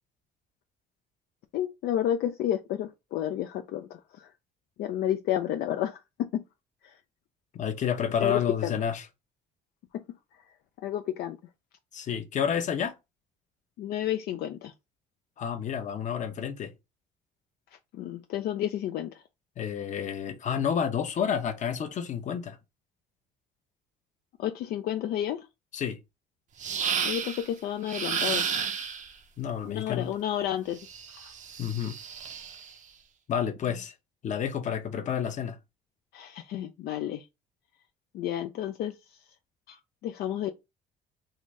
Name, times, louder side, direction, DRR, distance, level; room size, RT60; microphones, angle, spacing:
voice 1, 1.5-4.3 4.8-6.4 6.8-6.9 8.2-8.8 10.8-11.4 13.8-14.7 17.9-19.2 24.4-25.5 27.0-28.5 29.7-30.8 31.1-31.3 36.1-37.2 38.1-38.9 39.7-39.8 40.0-40.5, left 11 dB, 70° left, 0.4 m, -31 dB
voice 2, 7.5-9.1 11.9-12.9 15.4-16.7 19.6-22.6 25.7-26.0 29.4-30.1 31.6-32.0 33.3-33.9 34.2-35.6, left 8 dB, 45° left, 0.8 m, -30 dB
sound 1, 26.6-27.5 27.9-29.1 30.8-32.7, right 7 dB, 45° right, 0.6 m, -32 dB
3.8 x 2.6 x 3.1 m
cardioid pair, 110°, 17 cm